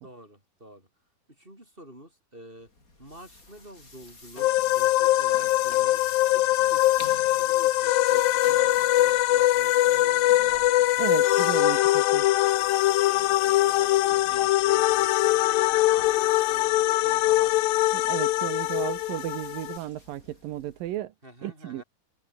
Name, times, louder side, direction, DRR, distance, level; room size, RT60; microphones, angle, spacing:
voice 1, 0.0-0.9 1.3-2.7 3.0-6.0 6.3-10.7 13.0-17.7 21.2-21.8, right 1 dB, 15° right, 7.4 m, -47 dB
sound 1, 2.6-21.1, left 2 dB, 20° left, 5.9 m, -49 dB
sound 2, 4.4-19.8, left 16 dB, 80° left, 2.7 m, -22 dB
voice 2, 11.0-12.3 17.9-21.1 21.4-21.8, right 13 dB, 75° right, 2.8 m, -34 dB
omnidirectional pair, 4.1 m